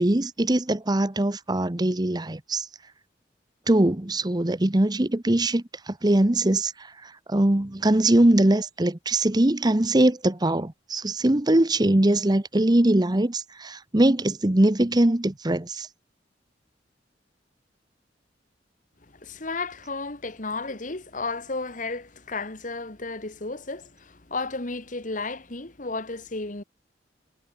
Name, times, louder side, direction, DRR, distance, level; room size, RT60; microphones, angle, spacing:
voice 1, 0.0-2.7 3.7-6.7 7.3-15.9, right 1 dB, 25° right, 0.9 m, -22 dB
voice 2, 19.1-26.6, left 3 dB, 45° left, 1.9 m, -33 dB
head